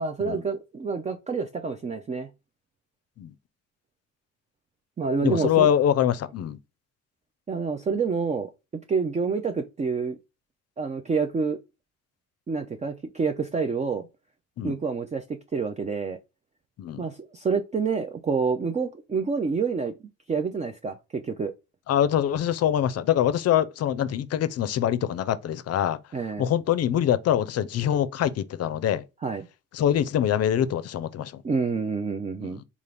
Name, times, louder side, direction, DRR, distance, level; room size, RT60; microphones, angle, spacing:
voice 1, 0.0-2.3 5.0-5.7 7.5-8.5 8.9-10.2 10.8-11.6 12.5-14.1 14.6-15.2 15.5-16.2 17.0-19.9 20.3-21.5 26.1-26.5 29.2-29.5 31.4-32.6, right 5 dB, 25° right, 0.4 m, -28 dB
voice 2, 5.2-6.6 14.6-14.8 16.8-17.0 21.9-26.0 26.4-29.0 29.7-31.4 32.4-32.6, left 10 dB, 55° left, 0.5 m, -24 dB
3.8 x 2.4 x 3.2 m
cardioid pair, 90°, 30 cm